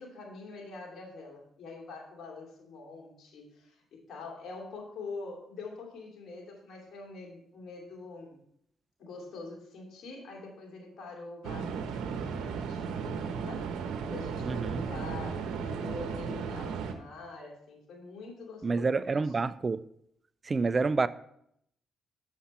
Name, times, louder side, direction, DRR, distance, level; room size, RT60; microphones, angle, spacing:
voice 1, 0.0-8.4 9.0-13.7 14.1-19.3, left 3 dB, 70° left, 0 dB, 2.6 m, -45 dB
sound 1, 11.4-16.9, right 6 dB, 85° right, 0.9 m, -35 dB
voice 2, 14.5-14.8 18.6-19.8 20.4-21.1, right 4 dB, 35° right, 16 dB, 0.4 m, -28 dB
7.4 x 6.8 x 4.2 m, 0.72 s
supercardioid pair, 65°, 0 cm